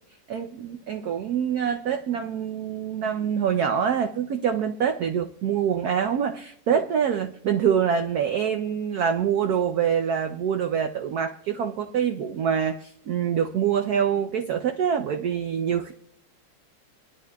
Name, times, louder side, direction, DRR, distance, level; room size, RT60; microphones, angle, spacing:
voice 1, 0.3-15.9, right 8 dB, 90° right, 6 dB, 0.8 m, -25 dB
25.5 x 11.5 x 2.3 m, 0.72 s
omnidirectional pair, 2.4 m